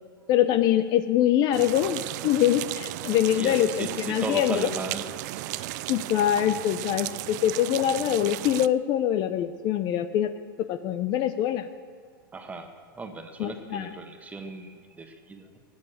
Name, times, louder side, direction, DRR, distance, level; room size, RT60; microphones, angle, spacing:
voice 1, 0.3-4.7 5.5-10.3 10.6-11.7 13.4-13.9, left 11 dB, 35° left, 11 dB, 0.7 m, -24 dB
sound 1, 1.5-8.7, right 17 dB, 50° right, 0.4 m, -35 dB
voice 2, 3.3-5.6 12.3-15.6, right 3 dB, 10° right, 6 dB, 1.5 m, -37 dB
17.0 x 9.6 x 7.3 m, 2.2 s
hypercardioid pair, 135°, 12 cm